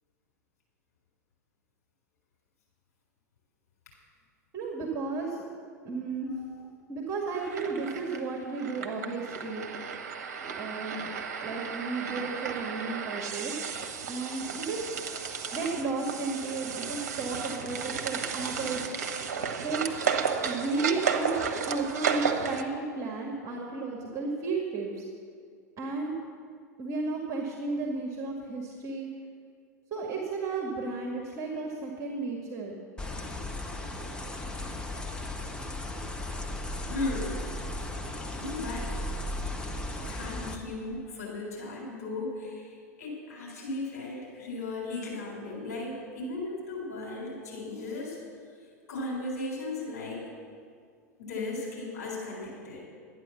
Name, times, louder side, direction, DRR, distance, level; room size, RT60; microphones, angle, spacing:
voice 1, 4.5-5.4 5.8-6.3 6.9-9.7 10.5-11.1 11.4-13.5 14.1-15.0 15.5-18.9 19.6-19.8 20.4-25.0 25.8-26.2 26.8-29.1 29.9-32.8, right 3 dB, 35° right, 0 dB, 1.9 m, -33 dB
sound 1, 7.3-22.6, right 6 dB, 65° right, 1.0 m, -33 dB
voice 2, 9.4-10.0 12.1-12.3 36.8-37.4 38.3-38.9 40.1-48.2 48.9-50.2 51.2-52.8, left 2 dB, 65° left, -3 dB, 4.1 m, -36 dB
sound 2, 33.0-40.6, left 1 dB, 10° left, 1.1 m, -36 dB
11.5 x 9.3 x 7.1 m, 2.1 s
figure-of-eight pair, 85°, 9 cm